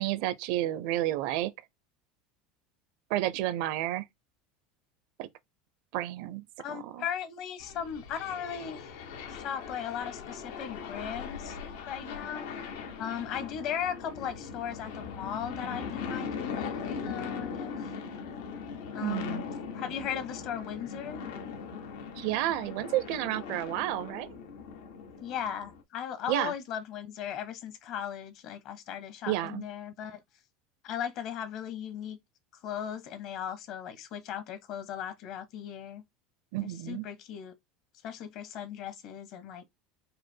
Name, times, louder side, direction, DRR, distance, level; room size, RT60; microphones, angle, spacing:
voice 1, 0.0-1.5 3.1-4.0 5.2-5.3 5.9-7.0 19.0-19.4 22.1-24.4 26.3-26.5 29.3-29.6 36.5-37.0, right 14 dB, 65° right, 0.5 m, -31 dB
voice 2, 6.6-8.9 9.3-11.6 11.9-12.5 13.0-17.8 18.9-19.4 19.7-21.2 25.2-30.2 30.8-32.2 32.6-36.0 36.6-37.5 38.0-39.7, left 9 dB, 50° left, 1.0 m, -37 dB
sound 1, 7.6-25.8, left 6 dB, 85° left, 1.0 m, -40 dB
4.9 x 2.1 x 4.4 m
supercardioid pair, 145°, 0 cm